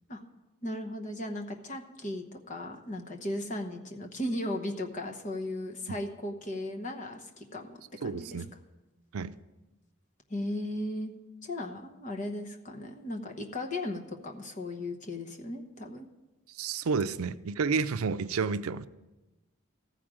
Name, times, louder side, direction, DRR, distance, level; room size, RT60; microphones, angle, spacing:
voice 1, 0.6-8.4 10.3-11.1 11.4-16.1, left 1 dB, 35° left, 1.0 m, -36 dB
voice 2, 8.0-8.5 9.1-9.4 16.6-18.9, right 5 dB, 80° right, 0.5 m, -30 dB
14.5 x 5.0 x 7.5 m
head